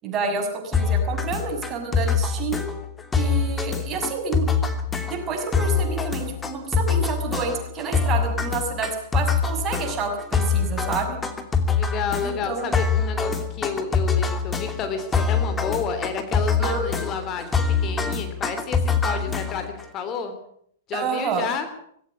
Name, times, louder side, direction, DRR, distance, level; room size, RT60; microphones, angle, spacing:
voice 1, 0.0-2.6 3.1-4.5 5.1-11.2 12.2-12.7 16.6-16.8 19.1-19.4 20.9-21.5, right 5 dB, 25° right, 3 dB, 6.6 m, -29 dB
sound 1, 0.7-19.8, left 5 dB, 15° left, 2.9 m, -24 dB
voice 2, 11.8-17.5 17.8-20.3 20.9-21.7, left 6 dB, 30° left, 8 dB, 3.2 m, -30 dB
19.5 x 17.0 x 8.7 m, 0.68 s
figure-of-eight pair, 105°, 0 cm